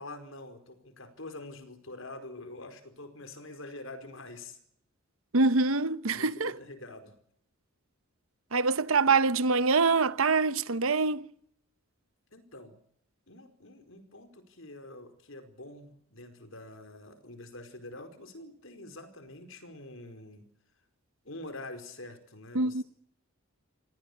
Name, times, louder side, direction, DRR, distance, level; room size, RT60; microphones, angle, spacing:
voice 1, 0.0-4.6 6.1-7.1 12.3-12.7 13.3-20.5 21.2-22.8, left 2 dB, 70° left, 4.9 m, -46 dB
voice 2, 5.3-6.5 8.5-11.3 22.5-22.8, right 4 dB, 75° right, 1.0 m, -25 dB
27.5 x 19.5 x 8.7 m
head